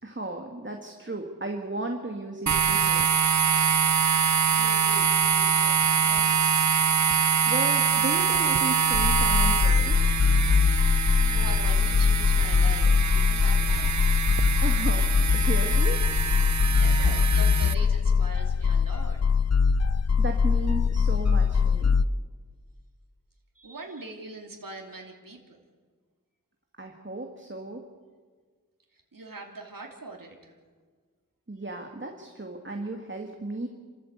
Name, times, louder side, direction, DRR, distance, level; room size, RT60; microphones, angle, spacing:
voice 1, 0.0-3.1 7.5-10.3 14.6-15.1 15.3-16.0 20.2-22.0 26.8-27.8 31.5-33.7, right 2 dB, 35° right, 3 dB, 2.1 m, -35 dB
sound 1, 2.5-17.7, right 7 dB, 55° right, 0.6 m, -25 dB
voice 2, 4.0-7.5 10.5-14.3 16.7-19.2 19.7-19.8 23.5-25.6 28.9-30.6, right 2 dB, 80° right, 1 dB, 2.9 m, -43 dB
sound 2, 8.9-22.0, left 5 dB, 50° left, 0.5 m, -22 dB
28.5 x 14.0 x 8.2 m, 1.5 s
wide cardioid pair, 60°, 33 cm